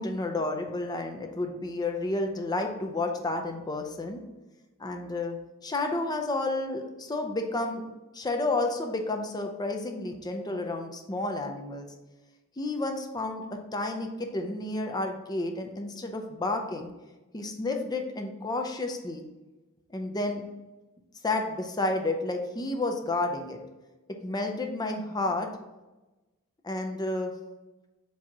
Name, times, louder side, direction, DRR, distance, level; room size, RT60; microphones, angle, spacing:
voice 1, 0.0-4.2 4.8-5.4 5.6-7.8 8.1-11.9 12.6-13.4 13.7-16.9 17.3-19.2 19.9-20.4 21.2-23.6 24.2-25.5 26.6-27.3, left 2 dB, 20° left, 3 dB, 0.6 m, -31 dB
7.4 x 2.9 x 4.6 m, 1.1 s
head